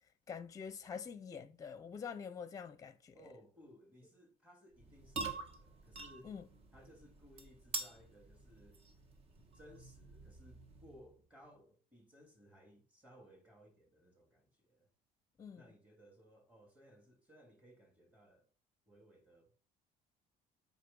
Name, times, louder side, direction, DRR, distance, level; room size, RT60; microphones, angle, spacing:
voice 1, 0.3-3.2 6.2-6.4 15.4-15.6, left 6 dB, 20° left, 0.8 m, -46 dB
voice 2, 3.1-6.3 6.7-8.8 9.5-14.9 15.5-18.5 18.9-19.5, equal, 10° right, 2.6 m, -61 dB
sound 1, 4.7-11.1, right 3 dB, 40° right, 1.3 m, -47 dB
8.3 x 5.3 x 3.9 m
cardioid pair, 145°, 16 cm